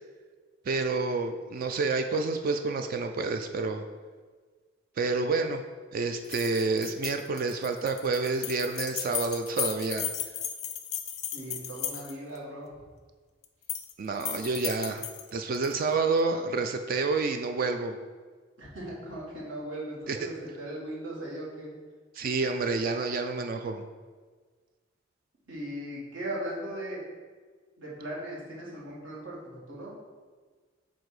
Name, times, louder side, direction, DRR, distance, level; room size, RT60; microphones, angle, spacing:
voice 1, 0.7-3.8 5.0-5.6 5.9-10.1 14.0-15.1 15.3-18.0 20.1-20.3 22.2-23.8, right 3 dB, 45° right, 6 dB, 0.3 m, -29 dB
sound 1, 6.2-12.4 13.4-13.9 14.2-15.7, left 10 dB, 35° left, 0.4 m, -35 dB
voice 2, 11.3-12.8 18.6-21.7 25.5-27.0 27.8-29.9, right 1 dB, 65° right, -6 dB, 1.8 m, -38 dB
7.7 x 2.6 x 4.8 m, 1.5 s
head